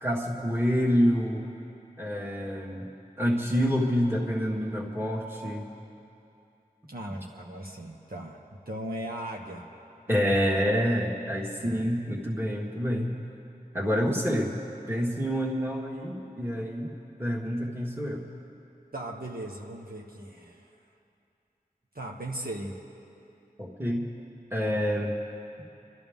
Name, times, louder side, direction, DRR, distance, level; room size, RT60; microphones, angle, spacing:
voice 1, 0.0-1.4 2.0-2.9 3.2-5.7 10.1-13.1 13.7-14.5 14.9-16.9 17.2-18.3 23.6-24.0 24.5-25.1, equal, 15° right, -4 dB, 1.7 m, -27 dB
voice 2, 6.9-9.7 11.7-12.0 18.9-20.7 21.9-22.8, right 1 dB, 70° right, -1 dB, 1.2 m, -38 dB
28.0 x 13.0 x 3.6 m, 2.7 s
wide cardioid pair, 45°, 16 cm